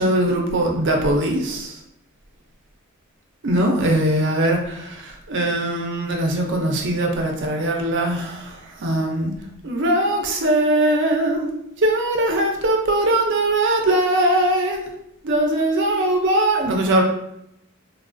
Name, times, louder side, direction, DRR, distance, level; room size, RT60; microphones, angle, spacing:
voice 1, 0.0-1.8 3.4-9.3 9.6-11.5 11.8-14.8 15.2-17.0, right 1 dB, 55° right, 2 dB, 0.6 m, -21 dB
3.4 x 2.3 x 2.5 m, 0.78 s
head